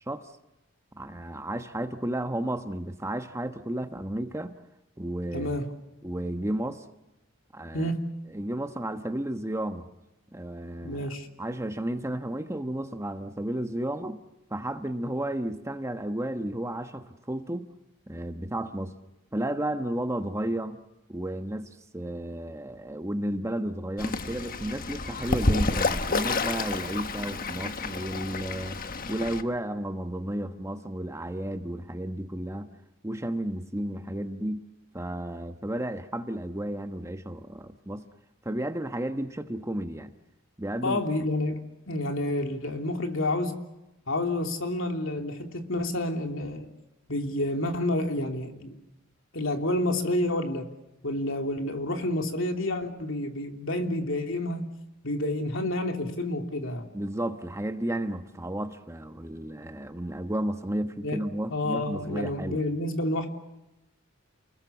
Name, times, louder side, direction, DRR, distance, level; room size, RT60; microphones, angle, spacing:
voice 1, 1.0-4.5 5.0-5.6 6.0-6.8 7.5-7.9 8.3-9.9 10.3-11.1 11.4-14.2 14.5-17.7 18.1-19.0 19.3-20.8 21.1-28.8 29.1-32.7 33.0-34.7 34.9-38.0 38.4-40.1 40.6-41.0 56.9-62.6, right 1 dB, 15° right, 1.2 m, -32 dB
voice 2, 5.3-5.7 7.7-8.0 10.8-11.3 40.8-43.6 44.1-46.7 47.1-48.7 49.3-50.7 51.0-54.6 55.0-56.9 61.0-61.2 61.5-63.3, left 1 dB, 70° left, 3.2 m, -29 dB
Fowl / Bird, 24.0-29.4, left 3 dB, 45° left, 1.4 m, -29 dB
29.5 x 21.5 x 7.1 m
head